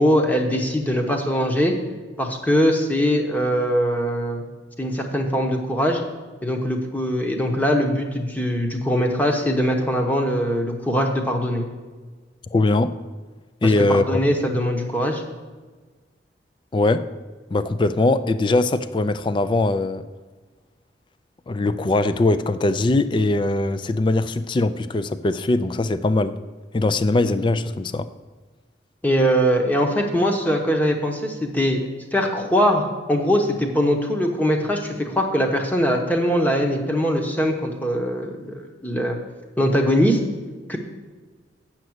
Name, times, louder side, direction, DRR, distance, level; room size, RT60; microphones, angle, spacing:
voice 1, 0.0-1.7 2.2-4.5 4.8-6.0 6.4-11.6 13.6-15.2 29.0-31.8 32.1-39.2 39.6-40.2 40.7-40.8, equal, 10° left, 2 dB, 1.0 m, -21 dB
voice 2, 12.5-12.9 13.6-14.2 16.7-17.1 17.5-20.1 21.5-26.3 26.7-28.1, left 2 dB, 25° left, 12 dB, 0.3 m, -21 dB
7.8 x 6.0 x 7.9 m, 1.4 s
head